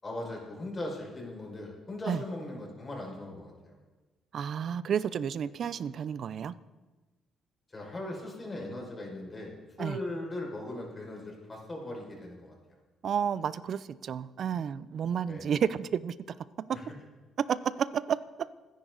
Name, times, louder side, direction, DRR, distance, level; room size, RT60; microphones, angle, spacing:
voice 1, 0.0-3.8 7.7-12.5 15.2-15.5 16.7-16.8, left 1 dB, 25° left, -1 dB, 5.7 m, -39 dB
voice 2, 4.3-6.5 9.8-10.0 13.0-16.1 16.7-16.8 17.5-18.5, right 8 dB, 60° right, 17 dB, 0.6 m, -31 dB
28.0 x 10.5 x 4.0 m, 1.2 s
cardioid pair, 90°, 0 cm